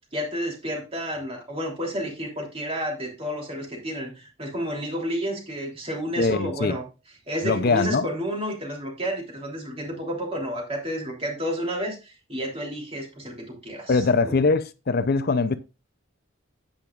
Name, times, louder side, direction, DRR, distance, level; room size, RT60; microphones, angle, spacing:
voice 1, 0.1-6.8 7.3-14.4, equal, 30° right, 3.1 m, -31 dB
voice 2, 6.2-6.8 7.4-8.1 13.9-15.6, left 4 dB, 50° left, 0.5 m, -22 dB
10.5 x 8.7 x 2.4 m
head